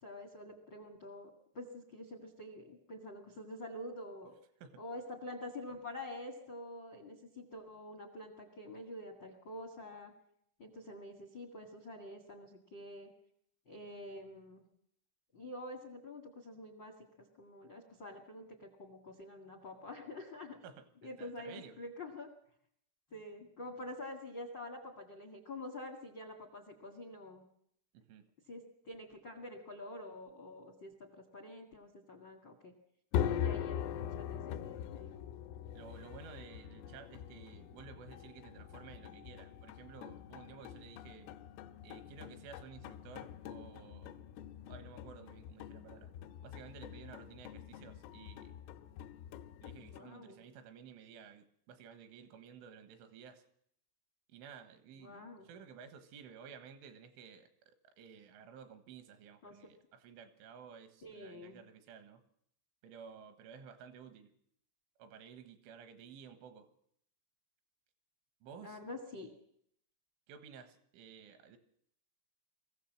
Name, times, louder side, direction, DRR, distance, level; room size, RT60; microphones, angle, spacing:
voice 1, 0.0-4.3 4.8-10.1 10.6-13.1 13.6-14.6 15.3-16.9 17.4-20.6 21.0-22.3 23.1-27.4 28.5-32.7 33.3-35.1 49.9-50.4 55.0-55.5 59.4-59.7 61.0-61.6 68.6-69.3, left 1 dB, 75° left, 7 dB, 1.0 m, -47 dB
voice 2, 21.2-21.8 27.9-28.3 35.7-41.3 41.8-44.2 44.7-46.1 46.4-48.6 49.6-53.4 54.3-57.5 57.8-62.2 62.8-64.3 65.0-66.7 68.4-68.8 70.3-71.6, right 7 dB, 80° right, 9 dB, 3.9 m, -54 dB
sound 1, 33.1-50.0, left 9 dB, 90° left, 3.5 m, -42 dB
22.5 x 15.5 x 7.5 m, 0.71 s
omnidirectional pair, 5.7 m